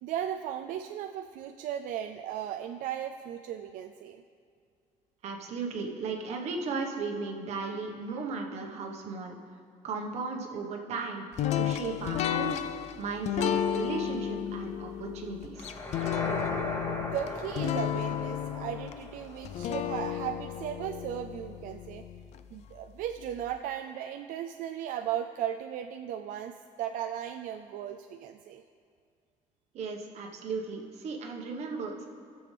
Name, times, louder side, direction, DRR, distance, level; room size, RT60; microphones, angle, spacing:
voice 1, 0.0-4.2 17.0-22.1 22.5-28.6, right 10 dB, 80° right, 6 dB, 0.4 m, -36 dB
voice 2, 5.2-9.3 9.8-11.3 11.6-15.8 29.7-32.1, right 4 dB, 55° right, 2 dB, 1.3 m, -36 dB
sound 1, 11.4-22.4, left 10 dB, 55° left, 0.4 m, -33 dB
sound 2, 15.6-19.7, left 2 dB, 20° left, 1.2 m, -37 dB
20.5 x 7.0 x 3.4 m, 2.3 s
cardioid pair, 175°, 14 cm